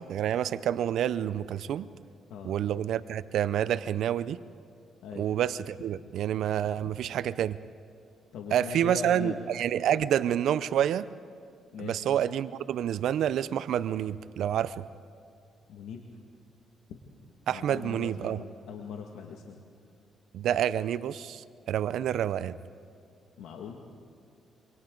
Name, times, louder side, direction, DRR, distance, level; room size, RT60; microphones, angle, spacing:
voice 1, 0.0-1.9 2.4-4.4 5.1-7.6 8.5-11.1 11.8-14.8 17.5-18.4 20.3-22.6, right 10 dB, 75° right, 15 dB, 0.6 m, -28 dB
voice 2, 5.0-5.3 6.7-6.9 8.3-9.4 11.7-12.1 15.7-16.1 16.9-17.0 17.5-19.6 23.4-23.8, left 6 dB, 85° left, 1 dB, 1.9 m, -40 dB
27.0 x 25.5 x 3.9 m, 2.5 s
cardioid pair, 90°, 0 cm